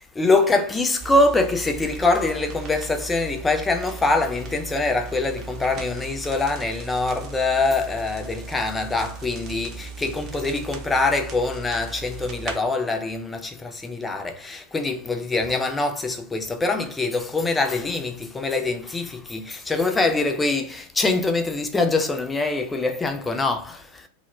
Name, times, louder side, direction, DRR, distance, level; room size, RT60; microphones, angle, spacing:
voice 1, 0.2-24.1, left 3 dB, 10° left, 0.4 m, -24 dB
sound 1, 1.0-12.6, right 5 dB, 35° right, 0.6 m, -38 dB
2.1 x 2.1 x 3.0 m
figure-of-eight pair, 90°, 0 cm